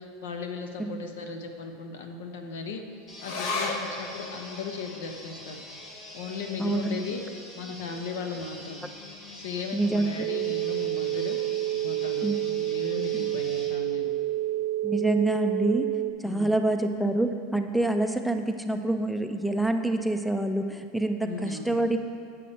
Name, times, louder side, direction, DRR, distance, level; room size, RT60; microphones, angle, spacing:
voice 1, 0.0-2.9 3.2-5.6 6.1-8.9 9.3-14.1 16.2-16.5 21.2-21.8, left 4 dB, 90° left, 5 dB, 0.8 m, -37 dB
sound 1, 3.1-13.7, left 1 dB, 25° left, 1.8 m, -44 dB
sound 2, 3.2-10.0 10.3-10.4 10.7-11.4 12.0-12.1, left 3 dB, 60° left, 0.8 m, -39 dB
voice 2, 6.6-7.0 9.7-10.1 10.5-10.6 12.2-12.4 13.1-13.3 14.8-15.8 16.2-22.0, right 2 dB, ahead, 6 dB, 0.3 m, -26 dB
sound 3, 10.2-16.1, right 14 dB, 70° right, 0.5 m, -29 dB
8.3 x 6.9 x 4.2 m, 2.3 s
supercardioid pair, 155°, 0 cm